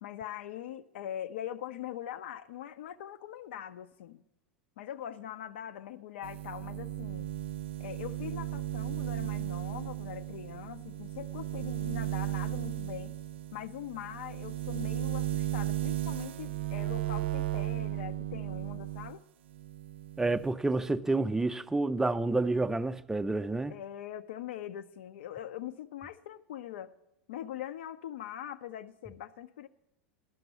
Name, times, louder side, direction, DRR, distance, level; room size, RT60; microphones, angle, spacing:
voice 1, 0.0-4.2 4.8-7.3 7.8-13.1 13.5-19.3 23.7-26.9 27.3-29.7, left 11 dB, 75° left, 0.5 m, -42 dB
sound 1, 6.2-19.2 19.5-20.5, right 15 dB, 75° right, 0.4 m, -35 dB
voice 2, 20.2-23.7, right 2 dB, 10° right, 0.4 m, -29 dB
11.5 x 6.0 x 8.1 m
hypercardioid pair, 105°, 6 cm